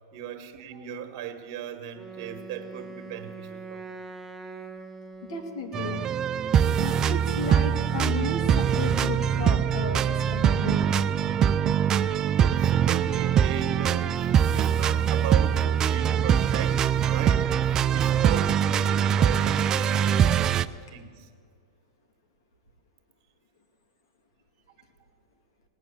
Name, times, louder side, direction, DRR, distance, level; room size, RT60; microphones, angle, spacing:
voice 1, 0.1-4.0 11.9-12.0 12.4-21.3 25.0-25.1, right 9 dB, 50° right, 7 dB, 1.7 m, -37 dB
Wind instrument woodwind instrument, 1.9-5.9, right 4 dB, 5° right, 1.2 m, -42 dB
voice 2, 5.3-6.1 6.8-10.0 10.3-11.2, left 3 dB, 75° left, 4 dB, 2.5 m, -34 dB
sound 1, 5.7-20.7, right 8 dB, 25° right, 0.4 m, -23 dB
18.5 x 9.1 x 7.3 m, 2.2 s
hypercardioid pair, 125°, 2 cm